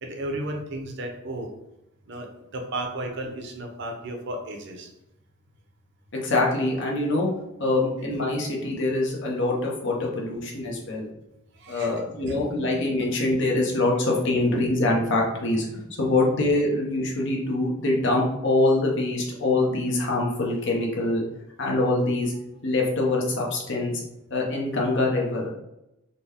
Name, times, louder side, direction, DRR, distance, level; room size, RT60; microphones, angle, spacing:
voice 1, 0.0-1.5 2.1-2.3 2.5-4.9 11.5-11.9 12.3-12.4, right 1 dB, 60° right, 3 dB, 0.6 m, -33 dB
voice 2, 6.1-7.3 7.6-11.1 11.7-15.7 16.0-21.2 21.6-22.3 22.6-23.9 24.3-25.5, left 2 dB, 60° left, -2 dB, 0.9 m, -24 dB
3.9 x 2.2 x 3.6 m, 0.89 s
head